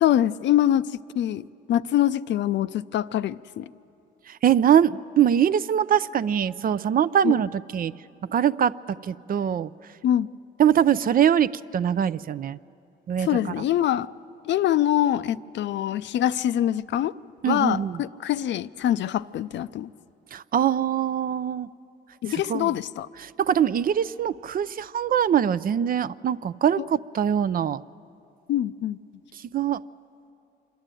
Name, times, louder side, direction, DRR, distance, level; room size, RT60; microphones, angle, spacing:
voice 1, 0.0-0.8 1.2-3.6 7.2-7.4 10.0-10.3 13.2-14.1 14.4-17.1 17.4-19.9 22.2-23.1 26.8-26.9 28.5-29.0, left 11 dB, 65° left, 0.5 m, -24 dB
voice 2, 4.3-7.9 8.3-8.7 9.0-9.7 10.6-12.6 13.1-13.3 17.4-18.0 20.3-21.7 22.5-22.7 23.2-27.8 29.5-29.8, right 9 dB, 45° right, 0.4 m, -22 dB
26.5 x 11.5 x 9.0 m
cardioid pair, 90°, 20 cm